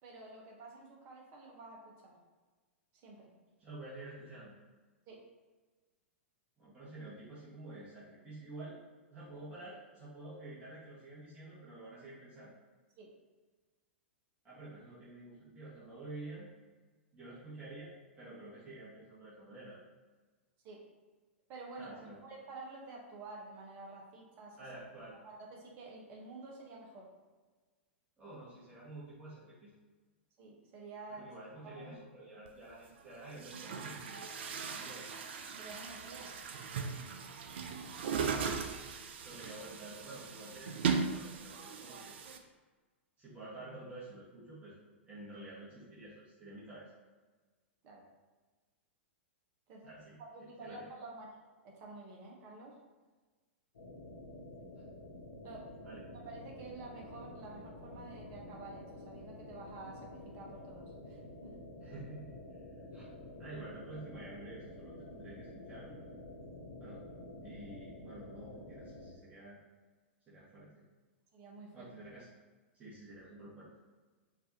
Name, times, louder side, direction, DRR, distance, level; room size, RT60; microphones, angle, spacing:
voice 1, 0.0-2.1 3.0-3.3 5.1-5.2 13.0-13.1 20.6-20.8 21.5-24.6 25.2-27.1 30.4-31.3 31.6-32.0 35.6-36.3 36.7-37.0 47.8-48.0 49.7-49.9 50.2-51.3 51.6-52.8 55.4-55.7 56.2-61.5 71.3-71.9, right 3 dB, 40° right, -2 dB, 1.1 m, -50 dB
voice 2, 3.6-4.5 6.6-8.8 9.1-12.5 14.4-16.5 17.1-19.8 21.8-22.2 24.6-25.2 28.2-29.7 31.1-35.1 39.2-42.2 43.2-44.8 45.1-46.9 49.8-50.2 50.6-50.8 55.8-56.0 61.8-62.3 62.9-63.1 63.4-66.0 66.8-67.0 67.4-69.6 70.3-70.8 71.7-72.3 72.7-73.7, right 2 dB, 20° right, -10 dB, 1.5 m, -49 dB
Chatter / Gurgling / Tap, 32.5-32.6 33.3-42.4, right 5 dB, 65° right, 0.4 m, -38 dB
sound 1, 53.7-69.1, left 1 dB, 75° left, 0.9 m, -49 dB
4.6 x 2.7 x 2.9 m, 1.3 s
hypercardioid pair, 105°, 7 cm